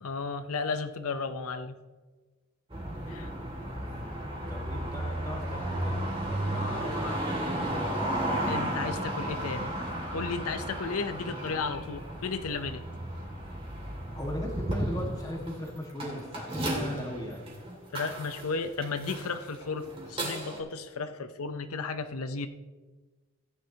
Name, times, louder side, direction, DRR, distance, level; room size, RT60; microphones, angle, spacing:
voice 1, 0.0-1.7 3.1-3.3 6.5-7.2 8.5-9.7 10.1-12.8 17.9-22.5, left 4 dB, 85° left, 9 dB, 0.7 m, -34 dB
sound 1, 2.7-20.6, right 1 dB, 25° right, 2.4 m, -34 dB
voice 2, 3.5-6.1 6.5-8.2 14.1-17.4, equal, 15° left, 1 dB, 1.6 m, -39 dB
15.5 x 9.9 x 2.9 m, 1.3 s
head